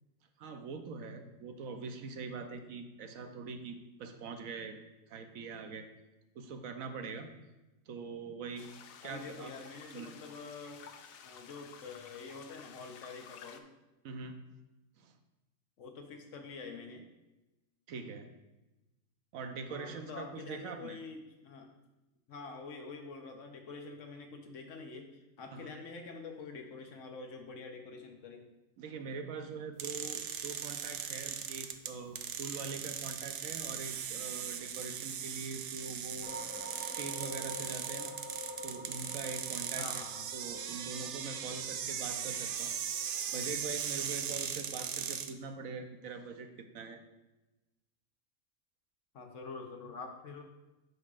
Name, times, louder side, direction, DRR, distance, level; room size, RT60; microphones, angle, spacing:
voice 1, 0.4-4.8 5.1-5.9 6.3-7.3 7.9-8.7 9.0-9.5 9.9-10.1 14.0-14.3 15.0-15.2 17.9-18.3 19.3-21.0 25.5-25.8 28.8-38.2 38.6-40.0 40.3-42.8 43.3-47.0, right 4 dB, 90° right, 6 dB, 1.2 m, -43 dB
sound 1, 8.6-13.6, left 7 dB, 85° left, 1.0 m, -53 dB
voice 2, 9.0-10.8 11.2-13.7 15.8-17.0 19.7-21.7 22.3-28.5 39.8-40.3 49.1-50.4, left 4 dB, 70° left, 4 dB, 1.3 m, -46 dB
sound 2, 29.8-45.3, right 8 dB, 65° right, 0.8 m, -39 dB
sound 3, 36.2-43.6, right 1 dB, 10° right, 0.5 m, -48 dB
9.5 x 6.5 x 2.5 m, 1.0 s
omnidirectional pair, 1.4 m